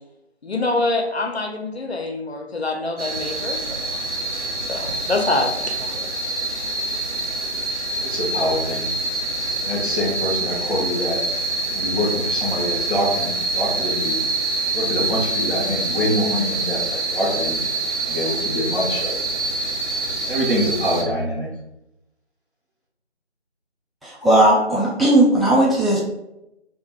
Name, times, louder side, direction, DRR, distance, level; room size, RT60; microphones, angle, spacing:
voice 1, 0.4-4.2 4.7-6.1, left 2 dB, 65° left, 4 dB, 0.4 m, -25 dB
sound 1, 3.0-21.0, right 2 dB, 85° right, 0.7 m, -26 dB
voice 2, 7.7-8.9 9.6-11.2 11.7-14.2 14.7-17.7 18.1-19.1 20.3-21.5, equal, 50° right, -4 dB, 0.7 m, -25 dB
voice 3, 24.0-26.0, right 1 dB, ahead, -5 dB, 0.4 m, -16 dB
2.2 x 2.1 x 3.1 m, 0.87 s
figure-of-eight pair, 175°, 35 cm